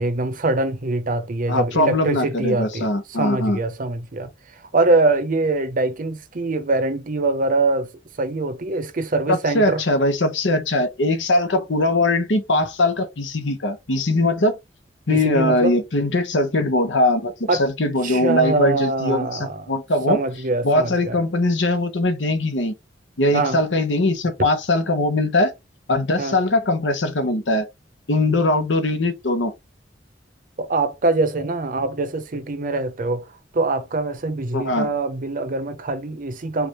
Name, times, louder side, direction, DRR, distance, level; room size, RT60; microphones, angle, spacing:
voice 1, 0.0-4.3 4.7-7.9 8.2-9.8 15.1-15.8 17.5-17.7 18.0-19.7 20.1-21.2 23.3-23.6 26.2-26.4 30.6-33.3 33.5-36.7, right 2 dB, 50° right, 0.7 m, -23 dB
voice 2, 1.5-3.6 9.3-14.6 15.1-17.3 17.6-20.2 20.6-22.7 23.2-25.5 25.9-27.6 28.1-29.5 34.5-34.9, left 2 dB, 85° left, 1.0 m, -21 dB
4.9 x 2.5 x 3.0 m
head